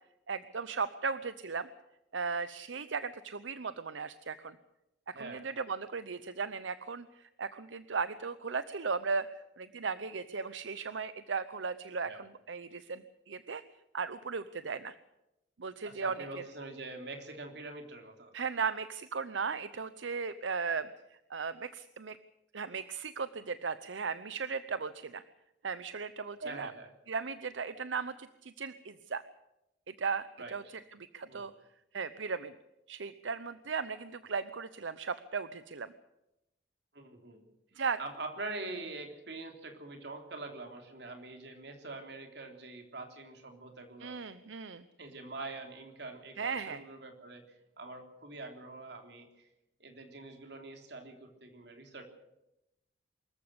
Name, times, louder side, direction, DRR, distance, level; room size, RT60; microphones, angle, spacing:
voice 1, 0.3-1.7 2.1-4.6 5.1-13.6 13.9-14.9 15.6-16.4 18.3-22.2 22.5-25.2 25.6-26.7 27.1-29.2 29.9-30.6 31.1-31.5 31.9-32.5 32.9-35.9 37.7-38.0 44.0-44.8 46.4-46.8, right 5 dB, 85° right, 13 dB, 0.8 m, -37 dB
voice 2, 5.1-5.5 12.0-12.2 15.8-18.3 26.4-26.9 30.4-30.6 31.3-31.5 36.9-37.4 38.0-44.2 45.0-47.4 47.8-49.5 49.8-52.0, right 3 dB, 60° right, 4 dB, 3.5 m, -44 dB
24.0 x 14.0 x 8.1 m, 0.90 s
head